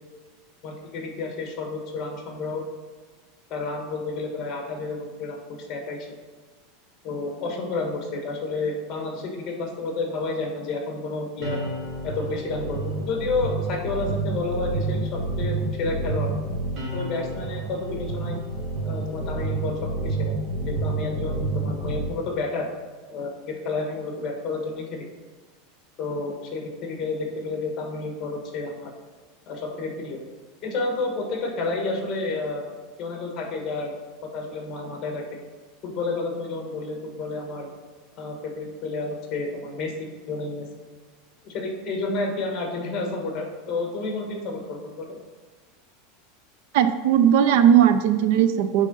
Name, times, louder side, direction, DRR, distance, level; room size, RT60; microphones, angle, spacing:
voice 1, 0.6-2.6 3.5-6.2 7.0-11.6 12.0-16.3 16.9-18.4 18.8-20.3 20.6-22.7 23.1-25.1 26.0-28.9 29.5-30.2 30.6-32.7 33.0-33.9 34.2-35.2 35.8-37.7 38.2-40.7 41.4-45.2, left 3 dB, 30° left, 2 dB, 1.4 m, -30 dB
sound 1, 11.4-22.1, right 3 dB, 35° right, 1.1 m, -29 dB
voice 2, 46.7-48.9, right 9 dB, 55° right, 10 dB, 0.4 m, -18 dB
8.4 x 3.7 x 5.3 m, 1.4 s
supercardioid pair, 170°, 0 cm